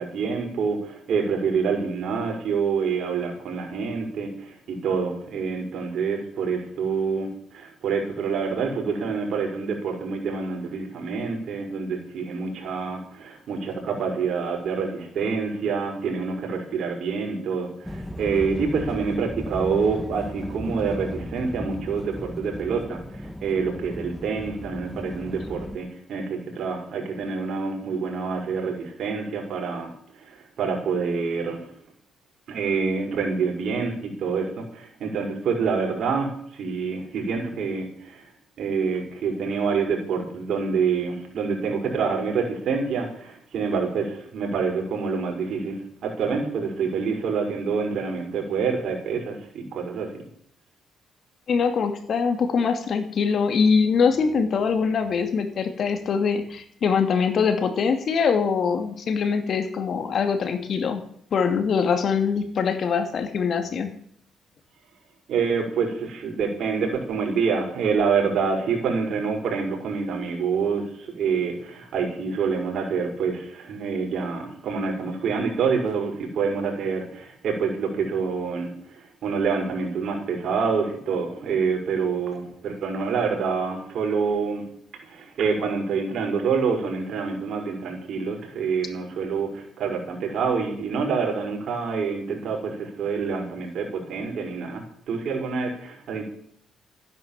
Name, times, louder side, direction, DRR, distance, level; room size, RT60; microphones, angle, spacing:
voice 1, 0.0-29.9 30.2-31.7 32.5-38.2 38.6-50.1 65.3-84.6 85.1-96.2, right 5 dB, 65° right, 2 dB, 5.6 m, -27 dB
sound 1, 17.8-25.8, equal, 5° left, 1.4 m, -36 dB
voice 2, 51.5-61.0 61.3-63.9, left 5 dB, 55° left, 8 dB, 2.5 m, -23 dB
15.0 x 10.5 x 7.4 m, 0.65 s
cardioid pair, 90°, 0 cm